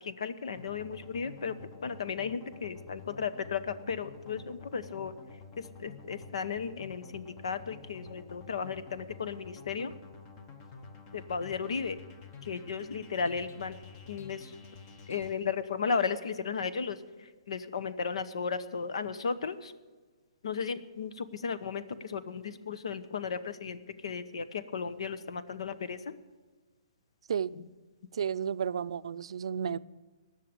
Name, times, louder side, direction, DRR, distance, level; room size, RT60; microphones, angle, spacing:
voice 1, 0.0-5.1 5.6-9.9 11.1-12.0 12.5-13.8 14.1-14.5 15.1-17.0 17.5-19.7 20.4-26.1, left 5 dB, 75° left, 13 dB, 0.9 m, -35 dB
sound 1, 0.6-15.3, left 4 dB, 30° left, 1.2 m, -49 dB
voice 2, 28.1-29.8, right 7 dB, 70° right, 15 dB, 0.4 m, -32 dB
18.5 x 6.5 x 8.8 m, 1.3 s
hypercardioid pair, 150°, 3 cm